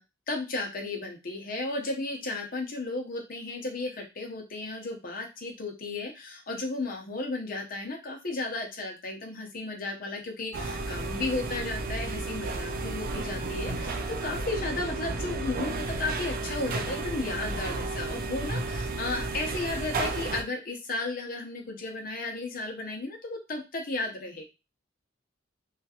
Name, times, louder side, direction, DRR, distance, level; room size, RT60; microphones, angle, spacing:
voice 1, 0.3-24.4, left 2 dB, 50° left, 1 dB, 0.8 m, -34 dB
sound 1, 10.5-20.4, right 2 dB, 50° right, 0.4 m, -32 dB
2.9 x 2.4 x 2.8 m, 0.26 s
head